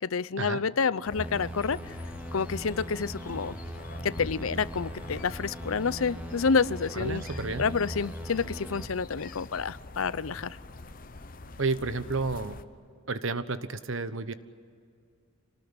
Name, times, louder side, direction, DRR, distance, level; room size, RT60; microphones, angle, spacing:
voice 1, 0.0-2.0 2.3-3.6 4.0-7.2 7.6-10.6, left 5 dB, 85° left, 18 dB, 0.6 m, -29 dB
sound 1, 1.1-12.6, left 2 dB, 40° left, 1.0 m, -44 dB
sound 2, 1.2-8.9, right 1 dB, 5° right, 0.7 m, -40 dB
voice 2, 6.9-7.7 11.6-12.6 13.1-14.3, right 3 dB, 70° right, 12 dB, 1.2 m, -31 dB
26.5 x 19.0 x 9.8 m, 2.3 s
head